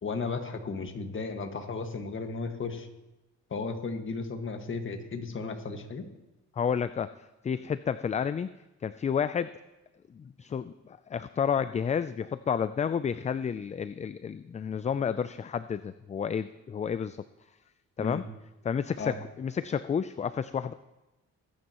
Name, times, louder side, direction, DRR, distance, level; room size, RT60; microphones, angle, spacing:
voice 1, 0.0-2.9 3.5-6.0 18.0-18.2 19.0-19.1, left 4 dB, 40° left, 5 dB, 1.7 m, -35 dB
voice 2, 6.6-7.1 7.4-8.5 8.8-9.5 10.1-17.2 18.0-18.2 18.6-20.7, left 7 dB, 25° left, 14 dB, 0.3 m, -30 dB
22.5 x 9.5 x 3.0 m, 1.0 s
cardioid pair, 90°, 30 cm